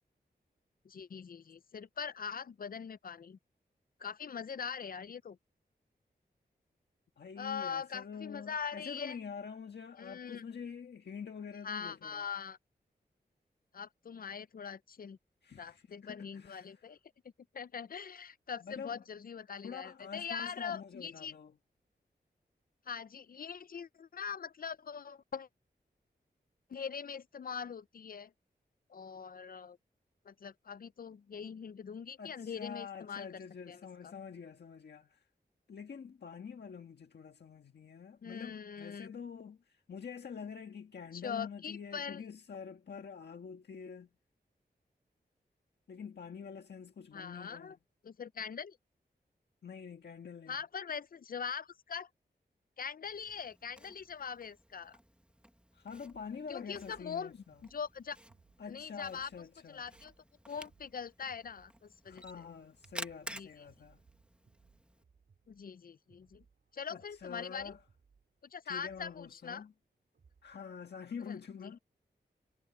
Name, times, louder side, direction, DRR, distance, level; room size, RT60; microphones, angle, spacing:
voice 1, 0.8-3.4 4.0-5.4 7.4-9.2 10.0-10.4 11.6-12.6 13.7-15.2 15.6-17.0 17.5-21.3 22.9-25.5 26.7-28.3 28.9-29.8 30.3-33.3 33.7-34.1 38.2-39.1 41.1-42.2 47.1-47.8 48.0-48.8 50.5-52.1 52.8-55.0 56.5-57.4 57.7-58.2 58.7-59.3 59.7-60.1 60.5-62.2 63.3-63.5 65.5-66.4 66.7-67.7 68.5-69.6 71.3-71.4 71.6-71.7, left 6 dB, 60° left, 0.5 m, -42 dB
voice 2, 7.2-12.2 15.4-16.9 18.6-19.0 19.6-21.5 32.2-35.2 35.7-44.1 45.9-47.8 49.6-50.6 55.7-57.6 58.6-59.8 62.0-64.0 66.9-67.8 68.6-69.7 70.4-71.8, left 6 dB, 90° left, 1.6 m, -46 dB
Camera, 53.0-65.0, equal, 5° right, 1.5 m, -52 dB
sound 1, 55.9-70.7, right 5 dB, 85° right, 4.8 m, -68 dB
wide cardioid pair, 110°, 17 cm